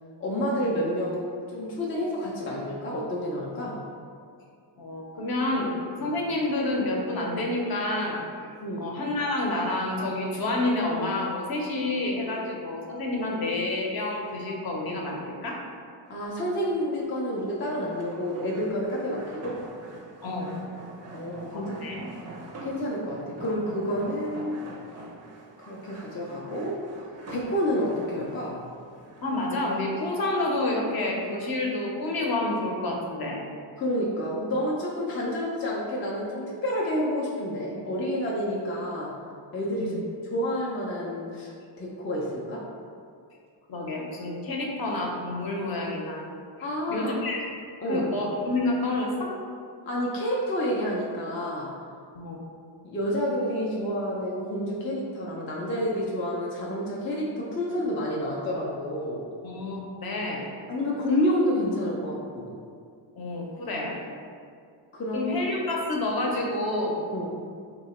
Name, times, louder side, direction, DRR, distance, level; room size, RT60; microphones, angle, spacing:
voice 1, 0.2-3.8 6.0-6.2 8.6-8.9 12.3-12.4 16.1-19.7 21.1-22.1 22.6-24.6 25.6-26.8 27.3-28.6 33.8-39.1 39.5-40.0 40.3-41.5 41.8-42.6 46.6-47.2 47.8-48.1 49.9-51.7 52.8-59.2 60.7-62.5 64.9-65.5 67.1-67.3, equal, 30° left, -4 dB, 0.3 m, -29 dB
voice 2, 4.8-5.7 6.0-8.5 8.8-15.6 20.2-20.5 21.5-22.0 29.2-33.4 39.8-40.0 43.7-46.2 46.9-47.4 47.9-49.3 52.1-52.4 59.4-60.5 63.2-64.0 65.1-67.0, left 2 dB, 45° left, -1 dB, 0.7 m, -29 dB
sound 1, 16.1-29.8, right 2 dB, 35° right, 0.4 m, -45 dB
3.0 x 2.8 x 4.1 m, 2.3 s
cardioid pair, 145°, 49 cm